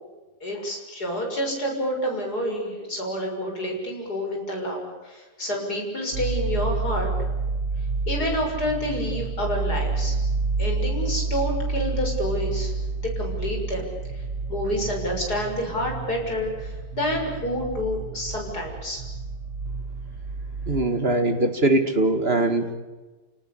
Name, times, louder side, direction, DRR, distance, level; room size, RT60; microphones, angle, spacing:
voice 1, 0.4-7.1 8.1-10.2 10.6-13.8 14.1-14.2 14.5-19.0, equal, 45° left, 1 dB, 7.3 m, -28 dB
sound 1, 6.1-20.8, right 3 dB, 50° right, 1.6 m, -29 dB
voice 2, 20.7-22.7, right 2 dB, 30° right, 8 dB, 2.2 m, -21 dB
29.0 x 19.0 x 8.6 m, 1.2 s
omnidirectional pair, 2.4 m